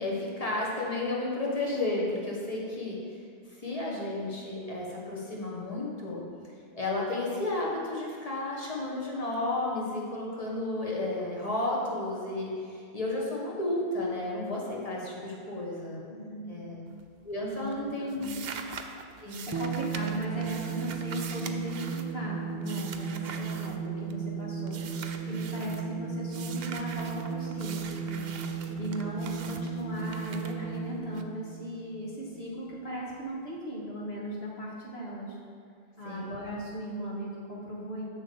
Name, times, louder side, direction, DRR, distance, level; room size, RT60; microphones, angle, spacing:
voice 1, 0.0-3.2 3.5-6.2 6.7-16.0 16.5-16.9 17.2-18.3 19.2-19.4 28.6-28.8 36.0-36.3, left 2 dB, 35° left, -3 dB, 1.7 m, -32 dB
voice 2, 16.1-16.6 17.6-17.7 18.0-18.4 19.5-28.4 28.8-35.4 36.0-38.0, right 1 dB, 80° left, -4 dB, 2.1 m, -37 dB
sound 1, 16.9-17.3 17.5-24.3 24.7-25.9 26.3-31.2, right 6 dB, 70° right, 0.9 m, -44 dB
sound 2, 19.5-32.3, right 6 dB, 30° right, 0.5 m, -35 dB
7.5 x 6.3 x 7.0 m, 2.3 s
omnidirectional pair, 1.0 m